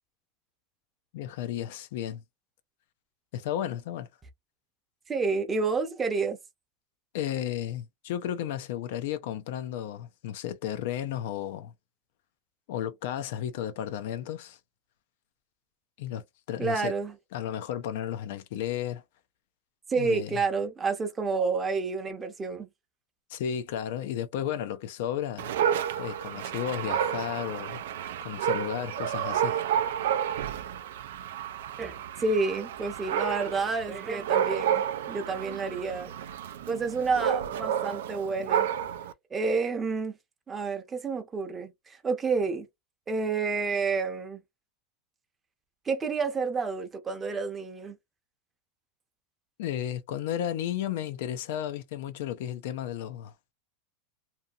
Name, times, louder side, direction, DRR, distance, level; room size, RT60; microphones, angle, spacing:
voice 1, 1.1-2.2 3.3-4.1 7.1-11.7 12.7-14.6 16.0-16.9 17.3-19.0 19.9-20.4 23.3-25.5 26.0-27.8 28.2-29.6 49.6-53.5, left 10 dB, 70° left, 0.4 m, -33 dB
voice 2, 5.1-6.4 16.6-17.1 19.9-22.7 31.8-36.1 36.7-38.7 39.3-40.1 40.5-42.7 43.1-44.4 45.9-48.0, right 4 dB, 15° right, 0.7 m, -29 dB
Dog, 25.4-39.1, right 9 dB, 80° right, 0.4 m, -30 dB
2.7 x 2.6 x 2.4 m
supercardioid pair, 145°, 0 cm